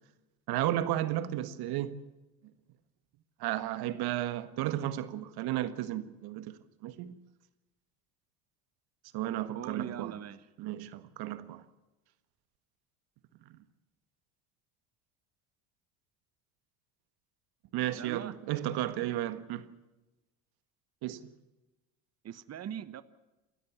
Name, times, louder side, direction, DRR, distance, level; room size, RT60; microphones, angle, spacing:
voice 1, 0.5-2.0 3.4-7.2 9.1-10.1 10.6-11.6 13.5-13.6 17.7-19.7 21.0-21.3, right 13 dB, 60° right, 1.7 m, -33 dB
voice 2, 9.5-10.5 17.9-18.3 22.2-23.0, right 9 dB, 35° right, 1.3 m, -40 dB
28.5 x 13.0 x 7.2 m
hypercardioid pair, 80°, 43 cm